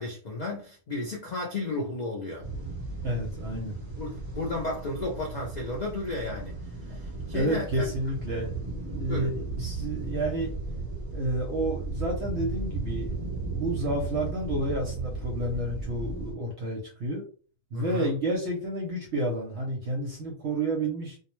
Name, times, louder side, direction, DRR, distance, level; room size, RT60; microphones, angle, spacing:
voice 1, 0.0-2.5 4.0-6.5 6.9-7.9 9.1-9.3 17.7-18.1, left 2 dB, 75° left, 0.4 m, -33 dB
sound 1, 2.4-16.3, right 3 dB, 20° right, 0.8 m, -35 dB
voice 2, 3.0-3.7 6.9-7.0 7.3-10.5 11.1-13.2 13.5-17.3 17.7-21.2, right 1 dB, 60° right, 0.8 m, -30 dB
2.4 x 2.0 x 3.0 m
omnidirectional pair, 1.5 m